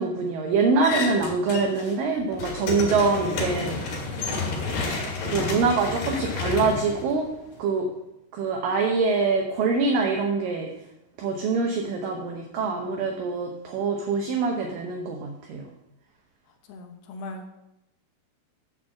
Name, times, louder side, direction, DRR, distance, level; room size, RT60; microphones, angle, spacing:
voice 1, 0.0-3.9 5.3-7.3 7.6-7.9 8.3-10.7 11.2-15.6, right 4 dB, 75° right, 1 dB, 2.2 m, -24 dB
sound 1, 0.8-1.9 2.2-7.6, left 3 dB, 65° left, 3.5 m, -30 dB
voice 2, 16.7-17.5, left 2 dB, 80° left, 4 dB, 3.1 m, -39 dB
8.9 x 4.0 x 7.1 m, 0.87 s
omnidirectional pair, 4.8 m